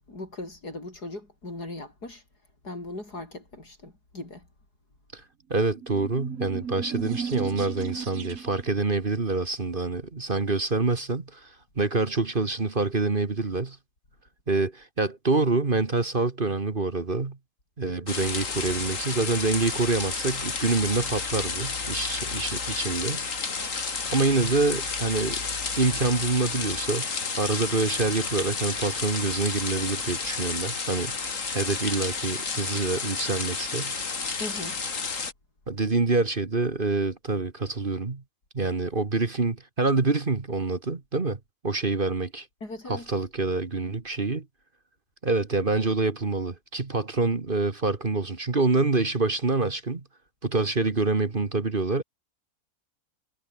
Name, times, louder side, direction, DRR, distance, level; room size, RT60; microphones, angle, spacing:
voice 1, 0.0-2.2 2.6-4.5 34.4-34.8 42.6-43.1, left 2 dB, 85° left, 7.7 m, -39 dB
voice 2, 5.5-13.8 14.5-17.4 17.8-23.2 24.1-25.4 25.8-27.1 27.4-31.3 31.5-33.9 35.7-38.2 38.5-42.5 42.9-44.5 45.2-50.0 50.4-52.0, right 3 dB, 35° right, 1.8 m, -26 dB
sound 1, 5.8-8.7, right 6 dB, 65° right, 2.0 m, -35 dB
sound 2, 18.1-35.3, left 4 dB, 55° left, 2.6 m, -31 dB
omnidirectional pair, 1.6 m